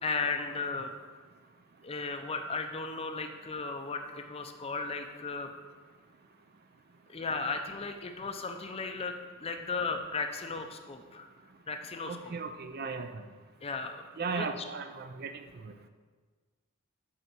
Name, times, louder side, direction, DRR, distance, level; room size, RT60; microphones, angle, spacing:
voice 1, 0.0-0.9 1.8-5.5 7.1-9.1 9.4-11.3 11.7-12.3 13.6-14.5, left 4 dB, 25° left, 6 dB, 0.5 m, -35 dB
voice 2, 12.0-13.2 14.2-15.9, right 4 dB, 45° right, 8 dB, 0.4 m, -37 dB
6.6 x 4.6 x 6.0 m, 1.5 s
head